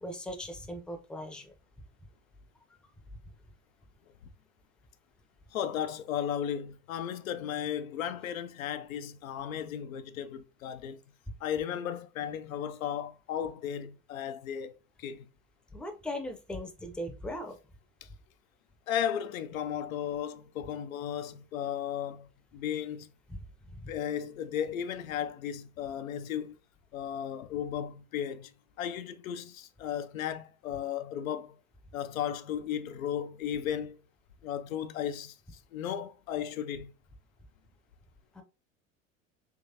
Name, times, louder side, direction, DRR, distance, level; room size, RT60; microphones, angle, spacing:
voice 1, 0.0-1.5 15.7-17.6 23.3-23.4 23.7-23.9 38.3-38.4, left 1 dB, ahead, 0.5 m, -39 dB
voice 2, 5.5-11.0 11.4-15.3 18.0-18.1 18.9-23.1 23.9-26.5 26.9-28.5 28.8-31.5 31.9-34.0 34.4-35.4 35.7-36.9, left 9 dB, 80° left, 0.5 m, -35 dB
3.4 x 3.1 x 2.7 m
hypercardioid pair, 85°, 40 cm